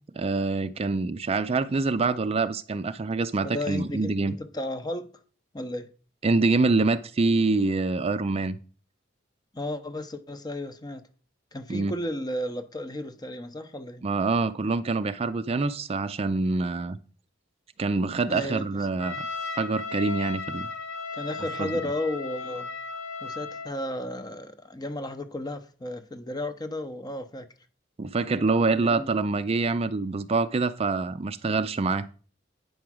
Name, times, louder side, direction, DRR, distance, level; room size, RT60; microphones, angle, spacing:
voice 1, 0.2-4.3 6.2-8.6 11.7-11.9 14.0-17.0 17.8-19.2 19.5-20.7 21.6-21.7 28.0-32.1, right 3 dB, 30° right, 0.4 m, -25 dB
voice 2, 3.4-5.1 5.5-5.9 9.5-11.0 11.5-14.0 18.3-18.8 21.1-22.7 23.2-27.5 28.8-29.1, left 1 dB, 20° left, 0.8 m, -34 dB
Trumpet, 19.0-23.7, left 4 dB, 85° left, 2.6 m, -35 dB
9.3 x 4.8 x 6.1 m
head